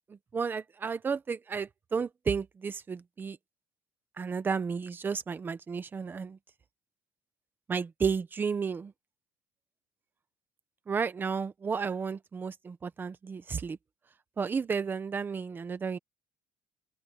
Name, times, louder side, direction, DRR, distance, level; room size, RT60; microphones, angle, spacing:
voice 1, 0.1-3.4 4.2-6.4 7.7-8.9 10.9-13.8 14.4-16.0, right 5 dB, 20° right, 1.1 m, -32 dB
open air
cardioid pair, 160°, 10 cm